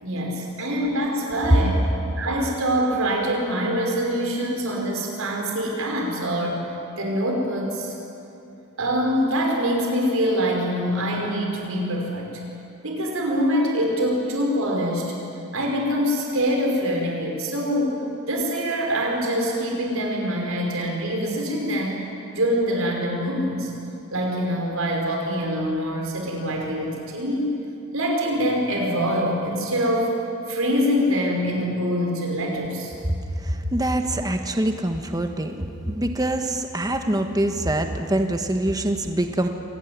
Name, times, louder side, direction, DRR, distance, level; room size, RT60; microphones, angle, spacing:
voice 1, 0.0-1.8 2.2-6.6 7.0-7.9 8.8-12.3 12.8-15.2 15.5-18.0 18.3-22.0 22.3-23.7 24.1-27.6 27.9-30.1 30.5-32.9, equal, 75° right, 1 dB, 5.4 m, -24 dB
voice 2, 33.4-39.5, right 1 dB, 20° right, 5 dB, 1.4 m, -24 dB
26.5 x 18.0 x 9.6 m, 2.7 s
head